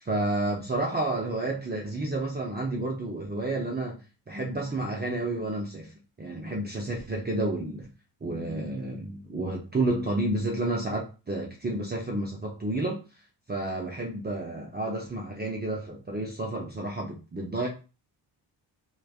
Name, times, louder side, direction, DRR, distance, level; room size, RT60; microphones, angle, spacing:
voice 1, 0.0-4.0 4.3-5.9 6.2-7.9 8.2-13.0 13.5-17.7, right 2 dB, 20° right, 0.6 m, -30 dB
3.1 x 2.2 x 2.4 m
cardioid pair, 70°, 45 cm